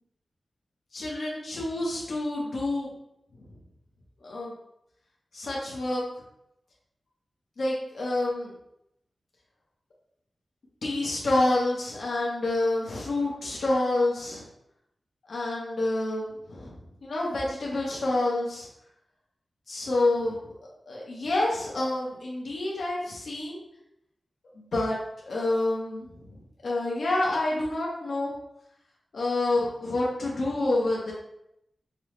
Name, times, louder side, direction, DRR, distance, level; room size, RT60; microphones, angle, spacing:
voice 1, 0.9-2.9 4.2-4.5 5.3-6.0 7.6-8.5 10.8-14.4 15.3-16.7 17.0-18.7 19.7-20.4 20.9-23.6 24.6-25.0 25.3-26.1 26.6-28.3 29.1-31.1, left 2 dB, 80° left, -4 dB, 0.9 m, -28 dB
5.3 x 2.1 x 3.1 m, 0.80 s
wide cardioid pair, 100°, 0 cm